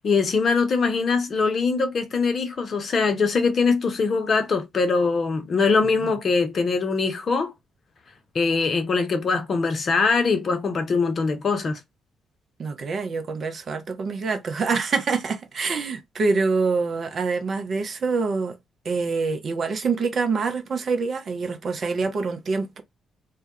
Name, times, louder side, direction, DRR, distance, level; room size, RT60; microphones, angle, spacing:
voice 1, 0.0-7.5 8.3-11.8, left 4 dB, 45° left, 0.6 m, -22 dB
voice 2, 12.6-18.6 18.8-22.8, right 4 dB, 45° right, 0.5 m, -25 dB
2.2 x 2.1 x 2.6 m
figure-of-eight pair, 40°, 0 cm